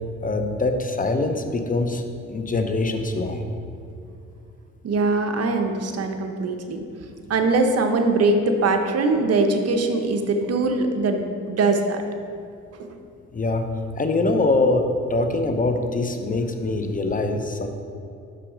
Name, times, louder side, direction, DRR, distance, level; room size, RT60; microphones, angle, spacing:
voice 1, 0.2-3.5 13.3-13.7 14.0-17.7, left 2 dB, 30° left, 6 dB, 0.6 m, -23 dB
voice 2, 4.8-6.8 7.3-12.0, right 3 dB, 55° right, 5 dB, 0.8 m, -22 dB
6.2 x 5.9 x 4.9 m, 2.6 s
cardioid pair, 90°, 30 cm